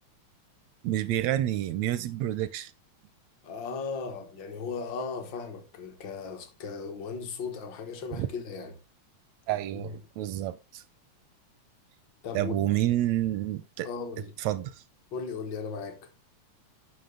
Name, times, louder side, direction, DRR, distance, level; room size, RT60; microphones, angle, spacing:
voice 1, 0.8-2.7 8.2-8.3 9.5-10.8 12.3-13.9 14.4-14.8, right 13 dB, 80° right, 1.7 m, -29 dB
voice 2, 3.4-8.7 9.7-9.9 12.2-12.7 13.8-14.3 15.1-16.1, left 5 dB, 50° left, 1.5 m, -37 dB
9.4 x 6.0 x 3.8 m
omnidirectional pair, 3.4 m